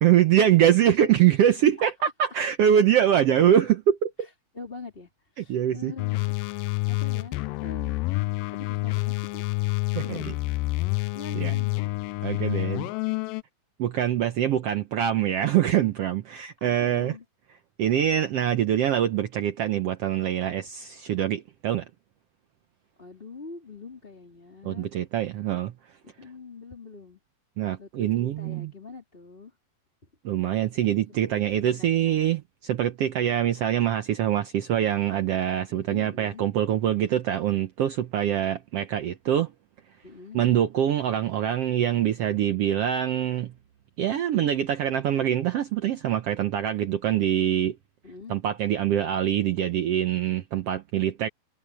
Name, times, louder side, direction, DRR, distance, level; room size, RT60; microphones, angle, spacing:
voice 1, 0.0-4.3 5.5-5.9 10.0-10.2 11.4-11.5 12.2-12.8 13.8-17.1 17.8-21.8 24.6-25.7 27.6-28.7 30.2-39.5 40.3-43.5 44.0-47.7 48.3-51.3, right 10 dB, 80° right, 1.4 m, -24 dB
voice 2, 4.2-7.3 7.6-8.0 8.5-9.4 10.0-10.4 11.1-11.9 16.6-17.2 23.0-24.9 26.0-27.2 27.8-29.6 31.3-32.3 35.7-36.4 40.0-40.4 48.0-48.4, left 4 dB, 15° left, 3.5 m, -44 dB
sound 1, 6.0-13.4, left 21 dB, 90° left, 2.2 m, -28 dB
omnidirectional pair, 3.8 m